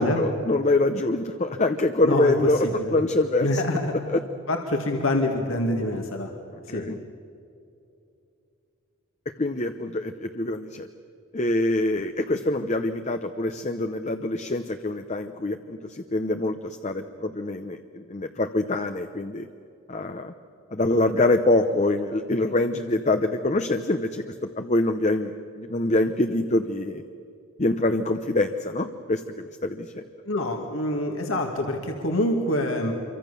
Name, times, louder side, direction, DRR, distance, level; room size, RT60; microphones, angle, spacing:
voice 1, 0.0-3.6 4.1-4.2 6.7-7.0 9.4-10.9 11.3-19.5 19.9-20.3 20.7-24.2 24.5-27.0 27.6-30.0, left 2 dB, 35° left, 7 dB, 0.8 m, -25 dB
voice 2, 2.0-3.0 3.4-3.9 4.5-6.3 6.7-6.8 30.3-32.9, left 1 dB, 75° left, 2 dB, 2.3 m, -26 dB
27.0 x 24.5 x 6.9 m, 2.7 s
head